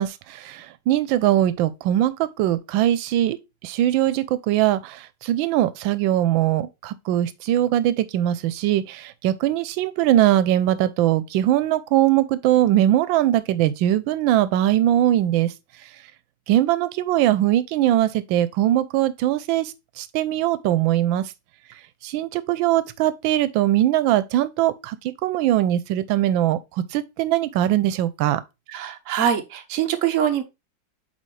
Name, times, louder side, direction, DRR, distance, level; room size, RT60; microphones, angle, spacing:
voice 1, 0.0-15.5 16.5-21.3 22.0-28.4, right 13 dB, 90° right, 1.3 m, -21 dB
voice 2, 28.7-30.4, right 9 dB, 55° right, 1.0 m, -23 dB
8.3 x 3.7 x 3.2 m
omnidirectional pair, 2.1 m